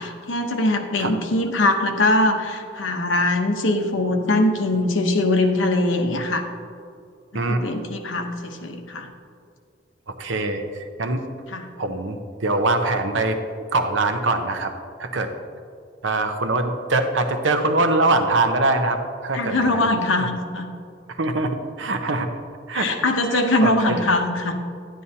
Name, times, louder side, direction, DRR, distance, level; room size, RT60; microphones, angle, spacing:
voice 1, 0.0-6.5 7.3-9.1 11.5-11.6 19.3-20.7 22.7-24.6, left 2 dB, 85° left, 4 dB, 1.0 m, -22 dB
voice 2, 10.1-11.2 11.8-13.4 13.7-14.7 15.0-15.3 16.0-19.9 21.2-21.5 21.8-22.3 22.7-22.9 23.6-24.1, right 2 dB, 75° right, 6 dB, 0.8 m, -23 dB
11.0 x 10.0 x 2.8 m, 2.3 s
head